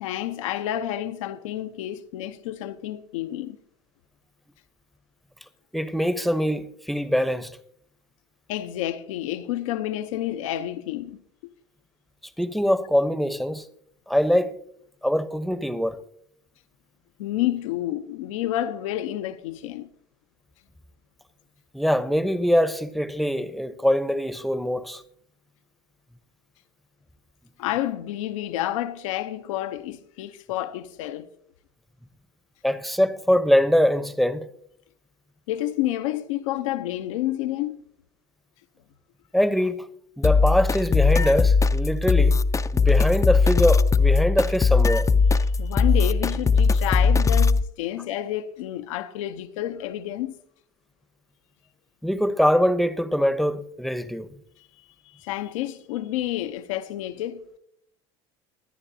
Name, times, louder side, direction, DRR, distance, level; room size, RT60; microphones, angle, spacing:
voice 1, 0.0-3.6 8.5-11.2 17.2-19.9 27.6-31.3 35.5-37.8 45.6-50.4 55.1-57.4, left 13 dB, 85° left, 0.8 m, -29 dB
voice 2, 5.7-7.5 12.4-13.7 14.1-14.6 15.0-16.0 21.7-25.0 32.6-34.5 39.3-39.9 40.2-42.4 42.7-45.1 52.0-54.3, equal, ahead, 0.9 m, -23 dB
sound 1, 40.2-47.6, left 4 dB, 20° left, 0.5 m, -19 dB
24.0 x 9.8 x 2.8 m
supercardioid pair, 90°, 16 cm